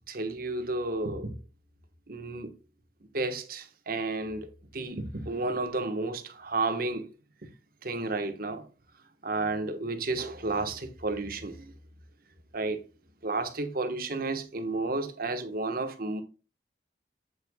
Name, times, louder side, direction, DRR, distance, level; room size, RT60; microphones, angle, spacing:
voice 1, 0.1-1.3 2.1-2.5 3.0-7.1 7.4-7.5 7.8-8.7 9.2-11.7 12.5-12.8 13.2-16.2, right 3 dB, 55° right, 1.4 m, -32 dB
8.2 x 8.0 x 2.3 m
head